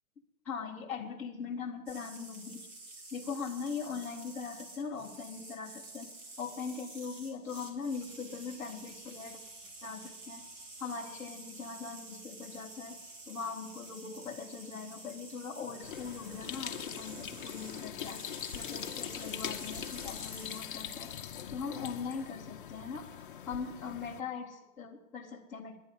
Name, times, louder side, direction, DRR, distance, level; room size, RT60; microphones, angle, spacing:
voice 1, 0.4-6.1 6.4-9.4 9.8-10.5 10.8-13.0 13.2-18.2 18.5-21.1 21.5-23.1 23.5-25.8, left 5 dB, 5° left, -7 dB, 0.7 m, -41 dB
sound 1, 1.9-20.6, right 2 dB, 60° right, 2.9 m, -50 dB
sound 2, 15.8-24.2, left 9 dB, 40° left, 0.6 m, -42 dB
11.0 x 9.8 x 9.6 m, 0.87 s
hypercardioid pair, 170°, 42 cm